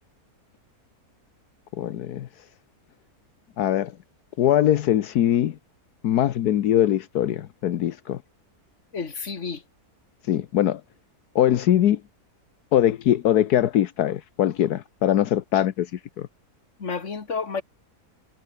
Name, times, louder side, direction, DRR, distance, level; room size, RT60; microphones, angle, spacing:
voice 1, 1.8-2.3 3.6-3.9 4.4-5.6 6.0-8.2 10.3-10.8 11.3-12.0 12.7-16.3, left 11 dB, 80° left, 1.4 m, -22 dB
voice 2, 8.9-9.6 16.8-17.6, left 5 dB, 50° left, 2.4 m, -30 dB
omnidirectional pair, 1.6 m